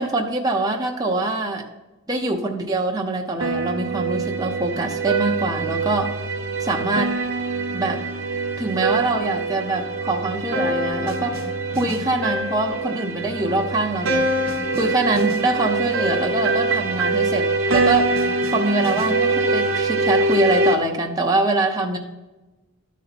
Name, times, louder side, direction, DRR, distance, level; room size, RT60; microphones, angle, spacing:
voice 1, 0.0-1.6 2.1-6.1 6.6-7.1 7.7-8.0 8.6-11.5 11.8-14.3 14.7-18.3 18.5-22.0, right 2 dB, 15° right, 1 dB, 0.7 m, -24 dB
sound 1, 3.4-20.7, right 2 dB, 60° right, 1.0 m, -24 dB
12.5 x 4.1 x 4.2 m, 1.1 s
head